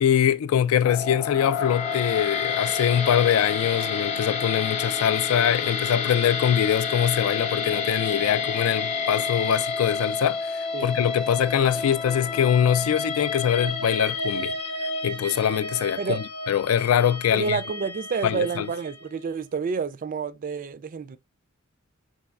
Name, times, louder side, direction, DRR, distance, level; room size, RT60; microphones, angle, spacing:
voice 1, 0.0-14.5 15.0-16.0 16.5-17.6 18.2-18.7, left 9 dB, 85° left, 0.3 m, -23 dB
sound 1, 0.8-19.0, left 4 dB, 30° left, 0.6 m, -30 dB
voice 2, 17.3-21.2, right 5 dB, 40° right, 0.3 m, -29 dB
4.2 x 3.0 x 2.3 m
head